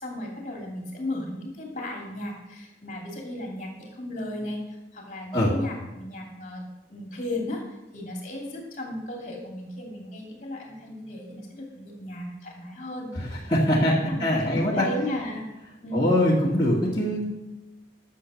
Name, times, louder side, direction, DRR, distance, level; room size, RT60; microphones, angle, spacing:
voice 1, 0.0-7.6 7.9-15.5 15.8-16.1, left 1 dB, 40° left, 0 dB, 2.7 m, -35 dB
voice 2, 13.1-14.9 15.9-17.3, left 1 dB, 25° left, -8 dB, 2.1 m, -23 dB
12.5 x 7.2 x 6.4 m, 1.0 s
head